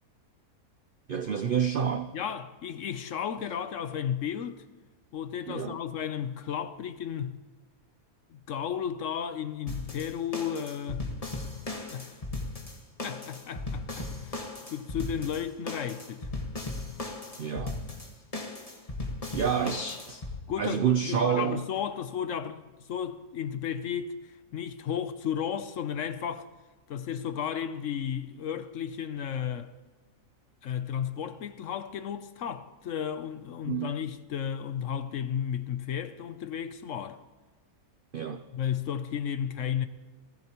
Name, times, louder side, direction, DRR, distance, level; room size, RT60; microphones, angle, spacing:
voice 1, 1.1-2.1 5.5-5.8 17.4-17.8 19.3-20.3 20.6-21.6 33.6-33.9 38.1-38.5, right 8 dB, 65° right, 0.5 m, -28 dB
voice 2, 2.1-4.6 5.1-7.4 8.3-11.1 11.9-12.1 13.0-16.3 20.5-22.6 22.9-26.5 26.9-29.7 30.6-37.2 38.5-39.9, left 8 dB, 65° left, 0.9 m, -33 dB
sound 1, 9.7-20.4, left 2 dB, 25° left, 1.6 m, -37 dB
29.0 x 16.0 x 3.0 m
omnidirectional pair, 1.6 m